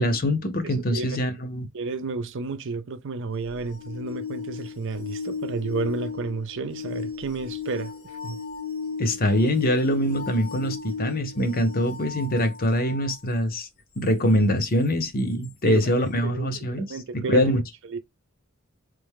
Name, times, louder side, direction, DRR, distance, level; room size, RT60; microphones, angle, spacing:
voice 1, 0.0-1.7 9.0-13.7 14.0-17.6, equal, 45° left, 0.8 m, -24 dB
voice 2, 0.6-1.2 1.7-7.9 8.2-8.4 15.6-17.5 17.9-18.0, right 4 dB, 60° right, 0.5 m, -32 dB
sound 1, 3.4-13.1 15.4-15.5, left 5 dB, 75° left, 1.8 m, -35 dB
3.7 x 3.4 x 3.6 m
head